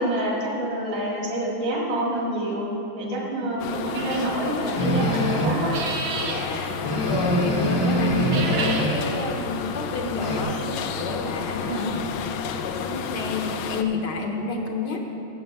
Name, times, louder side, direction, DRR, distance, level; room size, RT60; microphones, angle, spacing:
voice 1, 0.0-2.7 3.0-5.7 7.8-8.1 11.7-11.9, right 1 dB, 60° right, -3 dB, 2.7 m, -27 dB
sound 1, 3.6-13.8, left 6 dB, 80° left, 1.4 m, -32 dB
sound 2, 3.9-4.4 5.6-6.4 8.2-8.9, right 4 dB, 90° right, 1.9 m, -30 dB
Slow Creepy Rock Game Video Guitar Music, 4.8-5.7 6.2-6.3 6.5-6.6 6.8-9.2 9.5-10.4, equal, 30° left, 0.5 m, -24 dB
voice 2, 6.2-11.9 12.6-15.1, left 3 dB, 65° left, 2 dB, 1.4 m, -30 dB
8.8 x 8.0 x 7.0 m, 2.9 s
omnidirectional pair, 2.2 m